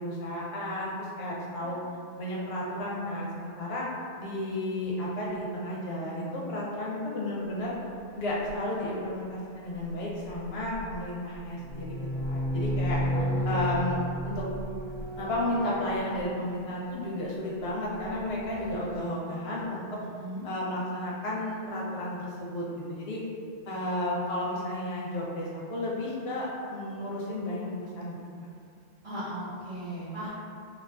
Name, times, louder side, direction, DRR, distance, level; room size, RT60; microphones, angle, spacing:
voice 1, 0.0-1.8 2.2-3.9 4.2-7.8 8.1-12.0 12.3-13.0 13.4-14.5 15.2-20.0 20.4-23.2 23.7-28.2, left 1 dB, 85° left, -5 dB, 0.8 m, -33 dB
sound 1, 8.5-8.6 10.3-11.0 11.4-16.8 17.7-19.0, equal, 65° right, 0.8 m, -33 dB
voice 2, 13.1-13.6 20.0-20.5 29.0-30.3, right 1 dB, 30° right, -12 dB, 1.1 m, -38 dB
2.3 x 2.3 x 2.3 m, 2.3 s
omnidirectional pair, 1.0 m